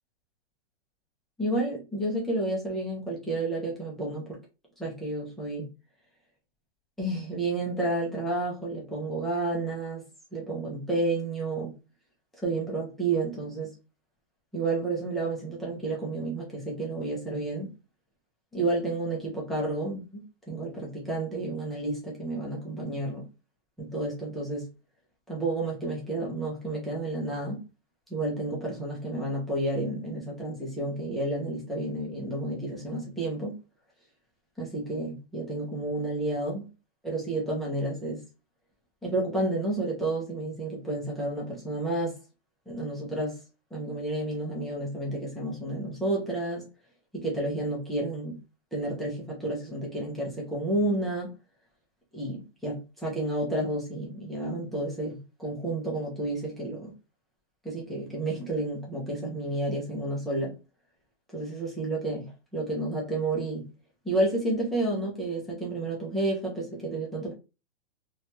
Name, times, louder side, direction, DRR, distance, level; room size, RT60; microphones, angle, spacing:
voice 1, 1.4-4.4 4.8-5.7 7.0-10.0 10.3-11.7 12.4-13.7 14.5-17.7 18.5-23.3 23.8-24.7 25.3-27.6 28.1-33.5 34.6-36.7 37.0-38.2 39.0-42.2 42.7-43.4 43.7-46.6 47.1-48.4 48.7-51.3 52.1-56.9 57.6-60.6 61.3-63.7 64.0-67.3, right 2 dB, ahead, 0.4 m, -31 dB
2.8 x 2.2 x 2.8 m
hypercardioid pair, 150°, 33 cm